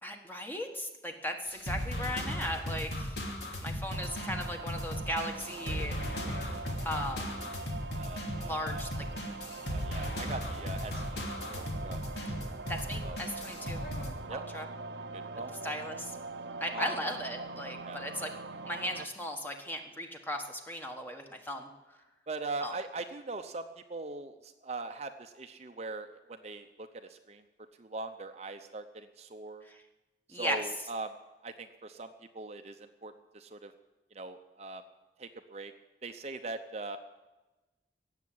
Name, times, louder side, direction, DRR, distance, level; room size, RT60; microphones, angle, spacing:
voice 1, 0.0-3.2 3.6-6.0 6.8-7.4 8.4-9.1 12.2-12.3 12.7-13.8 14.3-14.6 15.6-16.2 16.6-18.3 18.7-21.7 22.6-22.7 29.7-29.8 30.3-30.6, equal, 10° left, 4 dB, 1.4 m, -37 dB
sound 1, 1.4-14.1, equal, 75° left, 2.8 m, -37 dB
sound 2, 3.9-19.1, right 3 dB, 80° right, 0.8 m, -43 dB
voice 2, 8.0-8.9 9.7-12.0 13.0-13.2 14.3-14.4 15.1-15.5 16.7-17.0 17.8-18.0 22.3-29.6 30.3-31.1 31.4-33.7 34.1-34.8 35.2-35.7 36.0-37.0, right 3 dB, 40° right, 7 dB, 0.7 m, -41 dB
sound 3, 14.0-16.5, left 1 dB, 60° left, 7.4 m, -54 dB
17.0 x 7.4 x 9.4 m, 1.1 s
head